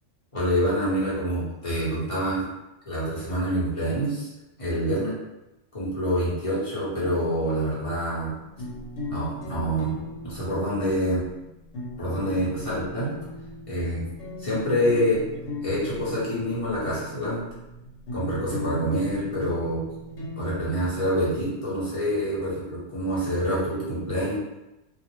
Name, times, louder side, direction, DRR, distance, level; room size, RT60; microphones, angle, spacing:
voice 1, 0.3-2.5 2.9-4.3 4.6-5.1 5.7-8.3 9.1-10.0 10.2-11.2 12.0-13.1 13.7-14.1 14.4-15.2 15.6-17.4 18.1-19.8 20.4-24.4, equal, 30° left, -8 dB, 0.9 m, -26 dB
sound 1, 8.2-21.5, left 1 dB, 75° left, 1.0 m, -38 dB
2.4 x 2.0 x 3.0 m, 0.96 s
omnidirectional pair, 1.2 m